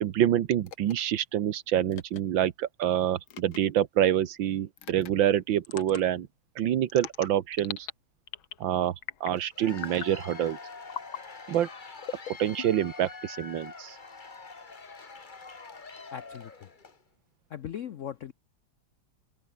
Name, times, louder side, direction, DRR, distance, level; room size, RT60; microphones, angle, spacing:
voice 1, 0.0-6.3 6.6-7.9 8.6-9.0 9.2-10.6 11.5-11.7 12.3-14.0, right 11 dB, 75° right, 1.8 m, -26 dB
sound 1, 0.7-0.9 1.9-2.2 3.3-3.6 4.8-5.1 5.7-6.0 6.9-7.9 8.3-8.7 9.0-9.4 9.8-10.1 10.9-11.2 12.0-12.9, left 10 dB, 85° left, 2.1 m, -40 dB
Cheering / Applause / Crowd, 9.4-17.0, left 4 dB, 25° left, 1.5 m, -45 dB
voice 2, 16.1-16.7 17.5-18.3, left 9 dB, 70° left, 0.7 m, -39 dB
omnidirectional pair, 2.1 m